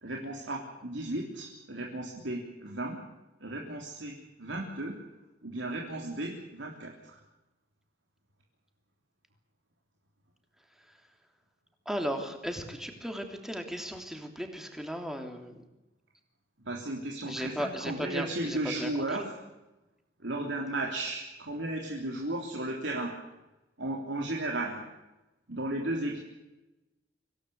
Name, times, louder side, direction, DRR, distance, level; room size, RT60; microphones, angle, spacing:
voice 1, 0.0-3.0 3.4-5.0 5.4-7.2 16.6-19.4 20.2-23.1 23.8-24.8 25.5-26.2, right 1 dB, 80° right, 0 dB, 3.5 m, -35 dB
voice 2, 11.8-15.5 17.2-18.9 19.2-19.3, equal, ahead, 4 dB, 3.2 m, -36 dB
25.5 x 17.5 x 8.3 m, 1.0 s
head